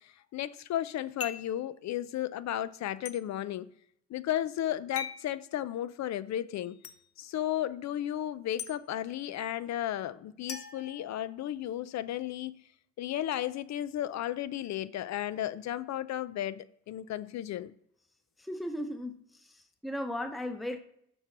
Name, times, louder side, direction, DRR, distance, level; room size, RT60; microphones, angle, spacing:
voice 1, 0.0-3.7 4.1-6.8 7.2-12.6 13.0-17.7, left 12 dB, 65° left, 0.5 m, -34 dB
sound 1, 1.2-1.6 3.0-3.2 4.9-5.3 6.8-7.0 8.6-8.7 10.5-11.6, left 7 dB, 50° left, 0.9 m, -40 dB
voice 2, 18.4-20.8, left 1 dB, ahead, 0.8 m, -37 dB
7.0 x 5.3 x 6.0 m
cardioid pair, 90°, 30 cm